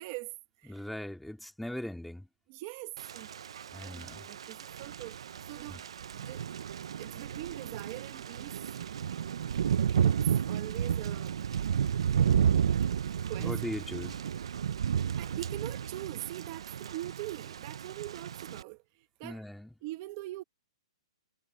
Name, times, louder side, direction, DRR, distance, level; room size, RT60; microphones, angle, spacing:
voice 1, 0.0-0.9 2.5-3.3 3.8-5.8 6.1-6.4 7.0-8.6 10.0-10.2 10.5-11.4 12.1-12.7 13.3-13.6 15.2-19.4 19.8-20.4, right 18 dB, 25° right, 1.2 m, -43 dB
voice 2, 0.6-2.3 3.7-4.3 5.7-5.8 13.4-14.2 19.2-19.7, left 1 dB, ahead, 2.3 m, -39 dB
Thunder / Rain, 3.0-18.6, right 8 dB, 60° right, 0.4 m, -32 dB
hypercardioid pair, 175°, 3 cm